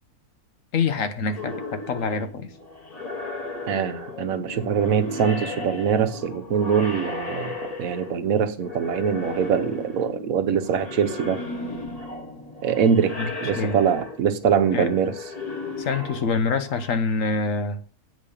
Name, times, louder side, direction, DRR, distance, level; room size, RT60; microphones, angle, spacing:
voice 1, 0.7-2.5 13.2-13.3 13.5-13.8 14.7-14.9 15.8-17.8, left 4 dB, 65° left, 1.2 m, -25 dB
sound 1, 1.3-8.3 8.6-16.9, left 2 dB, 25° left, 1.8 m, -35 dB
voice 2, 3.7-11.4 12.6-15.1, right 7 dB, 70° right, 1.3 m, -23 dB
8.2 x 5.2 x 7.0 m
omnidirectional pair, 1.6 m